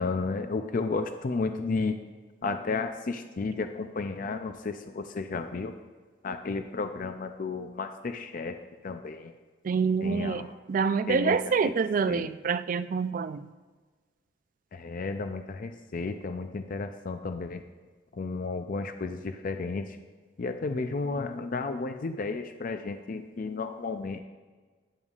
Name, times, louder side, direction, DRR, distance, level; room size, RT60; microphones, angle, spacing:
voice 1, 0.0-2.0 2.4-5.8 6.2-8.6 8.8-9.3 10.0-10.5 11.1-11.7 12.1-12.3 14.7-17.6 18.1-19.9 20.4-24.2, left 3 dB, 45° left, 8 dB, 0.5 m, -33 dB
voice 2, 9.6-13.5, right 5 dB, 45° right, 13 dB, 0.3 m, -27 dB
12.5 x 9.8 x 2.4 m, 1.4 s
head